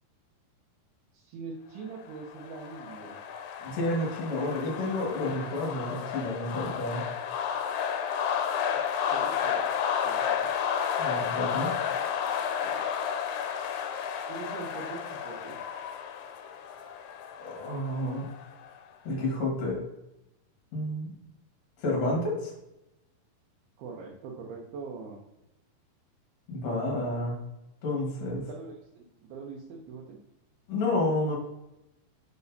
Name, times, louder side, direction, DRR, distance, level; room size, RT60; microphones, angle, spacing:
voice 1, 1.1-3.2 9.1-9.7 10.0-10.5 12.4-12.8 14.3-15.6 23.8-25.2 28.3-30.2, right 4 dB, 80° right, -2 dB, 2.6 m, -42 dB
sound 1, 2.1-18.8, left 8 dB, 85° left, 2.5 m, -32 dB
voice 2, 3.6-7.0 11.0-11.7 17.4-18.3 19.0-19.8 20.7-21.1 21.8-22.5 26.5-27.4 27.8-28.4 30.7-31.4, left 1 dB, 55° left, -2 dB, 2.2 m, -30 dB
6.9 x 5.2 x 2.7 m, 0.90 s
omnidirectional pair, 4.6 m